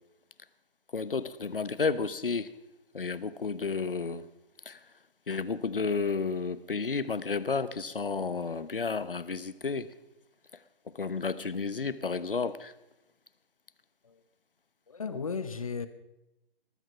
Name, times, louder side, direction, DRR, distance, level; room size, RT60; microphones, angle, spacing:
voice 1, 0.9-2.5 2.9-4.3 4.7-4.8 5.3-9.9 10.9-12.7, left 4 dB, 60° left, 1.0 m, -31 dB
voice 2, 14.9-15.9, left 5 dB, 35° left, 1.0 m, -35 dB
19.5 x 8.9 x 5.8 m
figure-of-eight pair, 150°, 30 cm